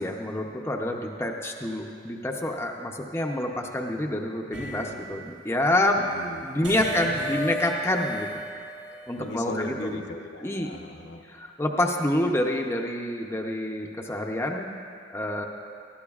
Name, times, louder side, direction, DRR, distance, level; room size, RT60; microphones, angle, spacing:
voice 1, 0.0-6.1 6.4-8.3 9.1-10.0 10.4-10.7 11.3-15.4, left 1 dB, 15° left, 1 dB, 0.7 m, -27 dB
sound 1, 4.5-5.4 6.6-9.5, equal, 80° right, 1.4 m, -36 dB
voice 2, 5.9-6.5 6.7-7.4 8.6-11.2, left 2 dB, 65° left, 3 dB, 0.8 m, -38 dB
18.5 x 12.5 x 2.4 m, 2.3 s
head